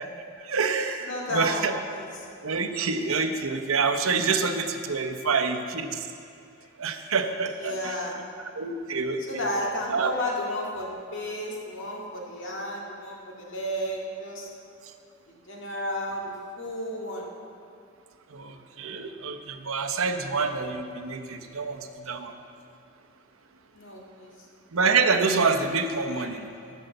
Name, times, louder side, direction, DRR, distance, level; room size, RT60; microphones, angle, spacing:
voice 1, 0.0-1.8 2.4-6.1 6.8-7.9 8.6-9.5 9.9-10.1 18.3-22.3 24.7-26.5, right 4 dB, 70° right, 6 dB, 0.8 m, -27 dB
voice 2, 1.0-2.2 6.6-6.7 7.6-8.2 9.3-14.5 15.5-17.3 21.2-21.3 23.7-24.3 26.2-26.4 26.6-26.7, left 1 dB, 55° left, -2 dB, 1.9 m, -33 dB
13.0 x 5.5 x 7.8 m, 2.4 s
head